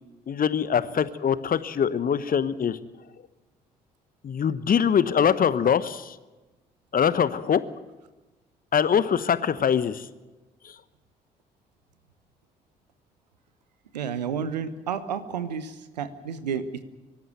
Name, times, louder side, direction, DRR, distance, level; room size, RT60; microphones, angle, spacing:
voice 1, 0.3-2.8 4.2-6.2 6.9-7.6 8.7-10.1 10.6-10.7, left 8 dB, 45° left, 15 dB, 1.1 m, -23 dB
voice 2, 13.9-16.8, right 7 dB, 80° right, 13 dB, 1.0 m, -31 dB
24.5 x 13.0 x 9.4 m, 1.1 s
figure-of-eight pair, 40°, 21 cm